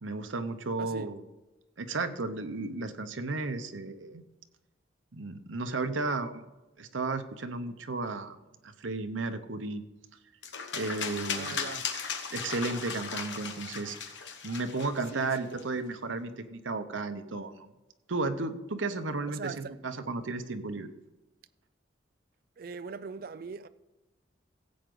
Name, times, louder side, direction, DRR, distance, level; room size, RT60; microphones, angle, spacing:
voice 1, 0.0-1.2 1.8-4.2 5.1-6.4 6.8-8.4 8.6-9.8 10.7-11.6 12.3-14.0 14.4-17.7 18.1-20.9, right 3 dB, 90° right, 0.9 m, -34 dB
voice 2, 0.8-1.1 11.3-11.9 15.1-15.7 19.3-19.8 22.6-23.7, right 4 dB, 50° right, 0.4 m, -41 dB
sound 1, 10.4-15.6, left 6 dB, 70° left, 1.3 m, -37 dB
15.5 x 8.0 x 3.9 m
head